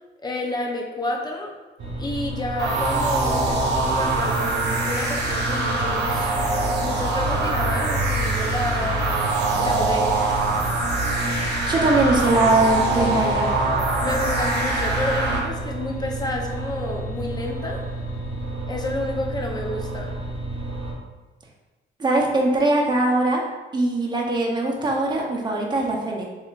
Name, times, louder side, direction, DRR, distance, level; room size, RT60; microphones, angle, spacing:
voice 1, 0.2-1.5 2.0-6.3 6.8-9.1 9.6-10.2 14.0-17.8 18.7-20.1, left 1 dB, 20° left, 0 dB, 0.7 m, -30 dB
sound 1, 1.8-20.9, right 2 dB, 80° right, 0.9 m, -31 dB
sound 2, 2.6-15.4, right 2 dB, 55° right, 0.9 m, -23 dB
voice 2, 11.7-13.5 22.0-23.4 23.7-26.2, right 2 dB, 20° right, -2 dB, 0.7 m, -21 dB
3.6 x 3.1 x 2.5 m, 1.2 s
cardioid pair, 90°, 20 cm